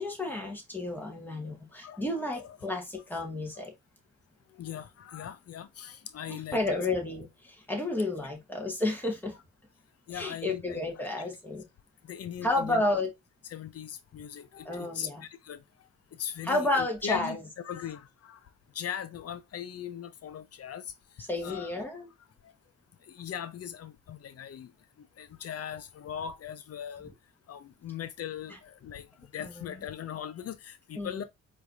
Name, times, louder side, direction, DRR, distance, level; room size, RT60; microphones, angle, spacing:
voice 1, 0.0-3.7 6.3-9.4 10.1-11.6 12.4-13.1 14.6-15.2 16.4-17.4 21.2-22.1 29.4-29.8 31.0-31.3, left 2 dB, 5° left, 2.0 m, -31 dB
voice 2, 1.8-2.6 3.6-3.7 4.5-6.8 10.1-11.1 12.1-12.8 13.5-15.6 16.2-17.4 17.6-18.4 18.7-20.8 21.4-21.9 23.1-24.7 25.2-27.1 27.5-29.1 29.3-31.2, left 9 dB, 55° left, 0.7 m, -39 dB
4.6 x 3.2 x 2.7 m
cardioid pair, 90°, 30 cm